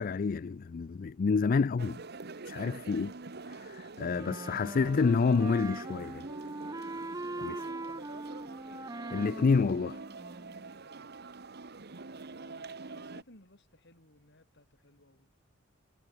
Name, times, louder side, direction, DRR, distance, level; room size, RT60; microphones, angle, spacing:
voice 1, 0.0-2.0 2.4-3.1 3.5-6.3 7.4-7.6 9.1-10.0, left 4 dB, 45° left, 0.4 m, -28 dB
sound 1, 1.8-13.2, right 3 dB, 55° right, 1.2 m, -45 dB
Wind instrument woodwind instrument, 4.1-10.7, right 2 dB, 20° right, 0.8 m, -41 dB
voice 2, 6.9-8.2 10.7-11.1 12.2-15.3, left 1 dB, 60° left, 6.0 m, -60 dB
head